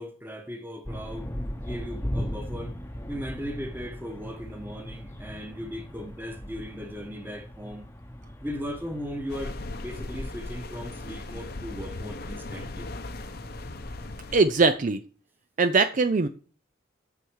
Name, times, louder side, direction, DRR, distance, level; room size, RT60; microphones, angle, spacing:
voice 1, 0.0-2.8 3.1-7.9 8.4-12.9, equal, 10° right, 1.2 m, -38 dB
sound 1, 0.8-14.7, equal, 15° left, 0.9 m, -39 dB
sound 2, 9.3-14.4, left 2 dB, 55° left, 0.8 m, -38 dB
voice 2, 14.3-15.0 15.6-16.3, right 4 dB, 40° right, 0.5 m, -21 dB
9.7 x 7.1 x 4.7 m
head